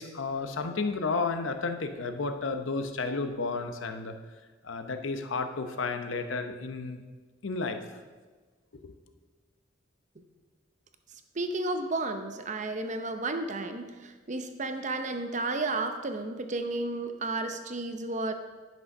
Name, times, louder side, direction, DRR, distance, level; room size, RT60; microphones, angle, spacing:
voice 1, 0.0-4.1 4.6-7.0 7.4-7.9 8.7-8.9, left 4 dB, 75° left, 7 dB, 0.8 m, -32 dB
voice 2, 11.3-18.3, right 2 dB, 40° right, 7 dB, 0.7 m, -32 dB
10.5 x 6.2 x 5.4 m, 1.4 s
head